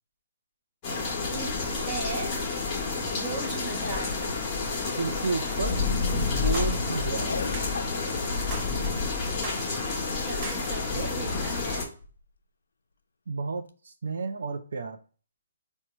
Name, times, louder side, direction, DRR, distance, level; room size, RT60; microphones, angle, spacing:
sound 1, 0.8-11.8, left 4 dB, 20° left, 0.9 m, -29 dB
voice 1, 1.9-2.3 3.1-4.2 8.0-8.6 10.2-11.9, right 3 dB, 10° right, -4 dB, 1.1 m, -37 dB
Cough, 2.7-3.0 3.8-4.6 5.8-6.1 7.3-8.3 11.4-12.2 13.7-13.8, left 4 dB, 80° left, 0.3 m, -39 dB
voice 2, 4.8-5.8 6.1-7.3 11.0-11.1 13.3-15.0, right 4 dB, 75° right, 6 dB, 0.5 m, -32 dB
sound 2, 6.5-6.8 7.5-7.7 8.5-8.7 9.4-9.7 10.4-10.6, right 4 dB, 25° right, 0.5 m, -37 dB
4.5 x 2.2 x 2.9 m, 0.39 s
hypercardioid pair, 160°, 0 cm